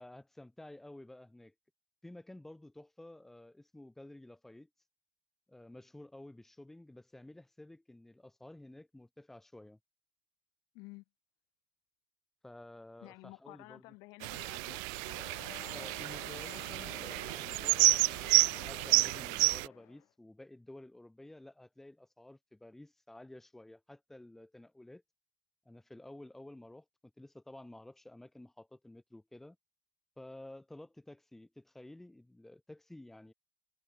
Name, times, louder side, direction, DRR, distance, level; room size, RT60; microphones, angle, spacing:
voice 1, 0.0-1.5 2.0-4.7 5.5-9.8 12.4-13.9 15.7-25.0 25.7-26.9 27.2-29.6 30.2-33.3, left 1 dB, 5° left, 3.9 m, -52 dB
voice 2, 13.0-14.8, left 26 dB, 65° left, 6.3 m, -51 dB
sound 1, 14.2-19.7, right 40 dB or more, 70° right, 0.4 m, -30 dB
sound 2, 14.9-20.0, left 16 dB, 50° left, 1.4 m, -51 dB
cardioid pair, 150°, 6 cm